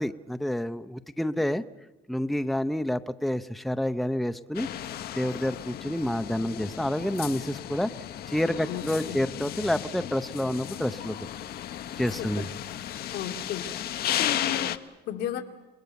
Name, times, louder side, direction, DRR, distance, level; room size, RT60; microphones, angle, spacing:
voice 1, 0.0-1.6 2.1-4.7 5.2-7.9 8.3-11.2 12.0-12.5, left 1 dB, ahead, 10 dB, 0.7 m, -28 dB
sound 1, 4.5-14.8, left 11 dB, 65° left, 1.1 m, -34 dB
voice 2, 8.6-9.2 12.2-12.3 13.1-13.6 14.1-15.4, left 10 dB, 85° left, 4 dB, 2.4 m, -34 dB
29.5 x 20.5 x 7.0 m, 1.1 s
cardioid pair, 110°, 17 cm